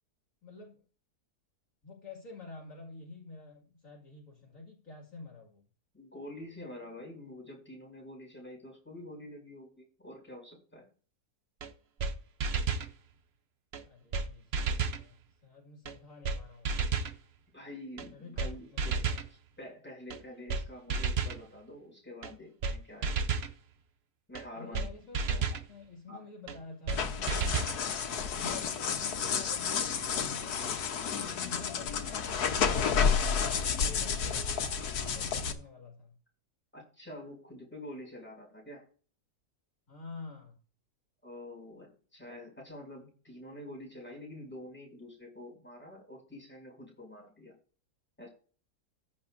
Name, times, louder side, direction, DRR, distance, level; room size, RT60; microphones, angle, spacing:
voice 1, 0.4-0.8 1.8-5.6 13.8-16.7 18.1-19.2 24.5-25.4 25.7-27.6 28.1-30.8 31.1-34.6 35.0-36.2 39.9-40.5, left 4 dB, 55° left, 0 dB, 2.6 m, -49 dB
voice 2, 5.9-10.9 17.5-19.0 19.6-23.3 24.3-24.9 25.3-25.4 26.1-26.2 36.7-38.8 41.2-47.5 48.2-48.3, left 1 dB, 5° left, -2 dB, 5.8 m, -47 dB
sound 1, 11.6-11.7 12.0-12.1 12.4-12.9 13.7-13.8 14.1-14.3 14.5-15.0 15.9-16.0 16.2-16.4 16.6-17.1 18.0-18.1 18.4-18.5 18.8-19.3 20.1-20.2 20.5-20.6 20.9-21.4 22.2-22.3 22.6-22.8 23.0-23.5 24.4-24.5 24.7-24.9 25.1-25.6 26.5-26.6 26.9-27.0 27.3-27.8, right 4 dB, 50° right, 0.9 m, -31 dB
sound 2, 26.9-35.5, left 6 dB, 75° left, 1.5 m, -31 dB
14.5 x 10.0 x 2.6 m, 0.40 s
omnidirectional pair, 1.7 m